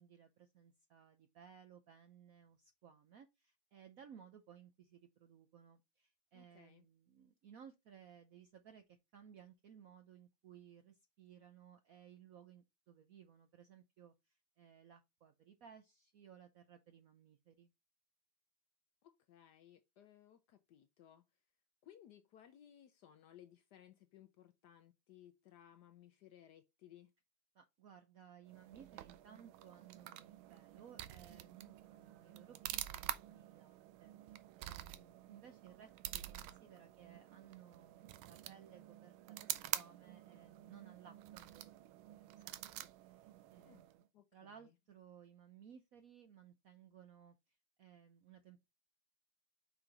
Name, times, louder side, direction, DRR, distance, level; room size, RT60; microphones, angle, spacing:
voice 1, 0.0-8.8 9.1-17.7 27.5-44.0 44.3-48.6, right 8 dB, 70° right, 0.8 m, -60 dB
voice 2, 6.3-6.9 19.0-21.2 21.8-27.1 43.7-43.9 44.1-44.7, left 11 dB, 75° left, 1.0 m, -62 dB
sound 1, 28.5-44.0, right 14 dB, 85° right, 1.4 m, -48 dB
5.7 x 4.4 x 3.8 m
omnidirectional pair, 2.2 m